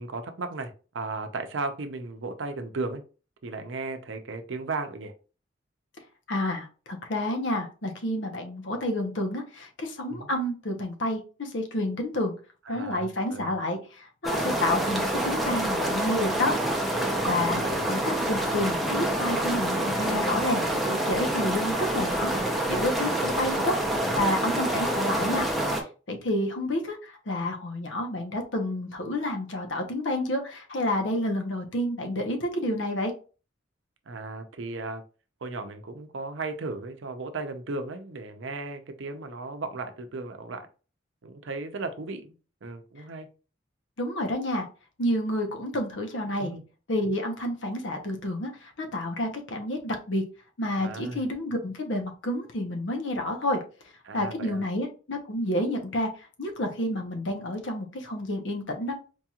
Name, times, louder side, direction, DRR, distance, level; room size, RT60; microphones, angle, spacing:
voice 1, 0.0-3.0 3.4-5.1 10.1-10.3 12.7-13.5 17.3-17.8 22.3-22.5 24.1-24.3 34.1-35.0 35.4-40.7 41.2-42.3 42.6-43.3 46.4-46.6 50.7-51.2 54.0-54.6, right 3 dB, 70° right, 7 dB, 0.6 m, -35 dB
voice 2, 6.3-12.3 12.7-16.5 16.9-23.7 24.2-33.1 44.0-44.7 45.0-46.5 46.9-50.2 50.6-53.6 54.1-56.1 56.4-58.9, left 1 dB, 70° left, 4 dB, 0.9 m, -29 dB
sound 1, 14.2-25.8, right 1 dB, ahead, 0.6 m, -27 dB
4.5 x 2.9 x 2.4 m, 0.35 s
head